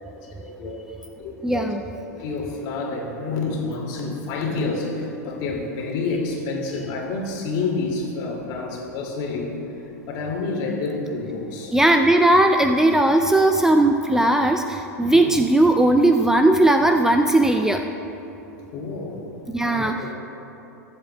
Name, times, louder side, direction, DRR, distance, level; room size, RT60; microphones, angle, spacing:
voice 1, 0.4-0.8 1.2-1.7 2.1-9.6 10.1-11.7 15.1-15.3 18.7-19.3 19.6-20.1, left 3 dB, 50° left, -1 dB, 2.3 m, -28 dB
voice 2, 1.4-1.8 11.7-17.8 19.5-19.9, right 1 dB, 5° right, 4 dB, 0.4 m, -18 dB
21.5 x 7.9 x 2.2 m, 2.9 s
hypercardioid pair, 90°, 9 cm